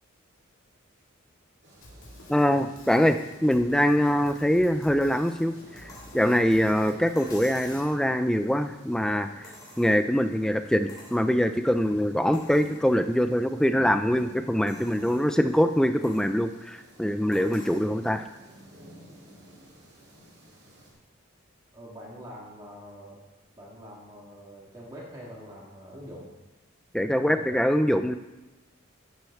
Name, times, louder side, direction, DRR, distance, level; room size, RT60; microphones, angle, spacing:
sound 1, 1.6-20.9, right 1 dB, 50° right, 2.3 m, -50 dB
Drum kit, 1.8-7.8, left 1 dB, 85° left, 2.0 m, -50 dB
voice 1, 2.3-9.5 9.8-18.2 26.9-28.1, equal, 5° left, 8 dB, 0.3 m, -24 dB
sound 2, 5.9-6.2 7.2-7.9 9.4-10.2 10.9-11.2 11.7-11.8 12.3-12.8 13.4-13.5 14.7-15.3 16.0-16.3 17.3-17.9 19.1-19.2, left 2 dB, 20° left, 2.5 m, -48 dB
voice 2, 21.7-23.2 23.6-26.3 27.2-27.8, equal, 20° right, -6 dB, 1.8 m, -44 dB
10.5 x 7.8 x 3.6 m, 1.1 s
head